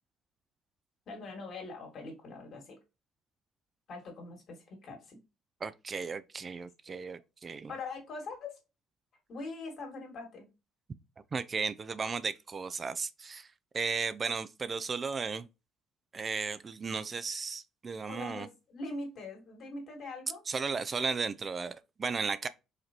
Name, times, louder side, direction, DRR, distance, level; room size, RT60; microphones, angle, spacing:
voice 1, 1.1-2.8 3.9-5.2 6.9-7.0 7.7-8.6 9.3-10.5 18.1-20.4, left 3 dB, 60° left, 2.2 m, -42 dB
voice 2, 5.6-7.7 11.3-13.5 13.7-15.5 16.1-18.5 20.5-22.5, right 5 dB, 40° right, 0.4 m, -35 dB
4.8 x 3.2 x 3.0 m
hypercardioid pair, 60°, 0 cm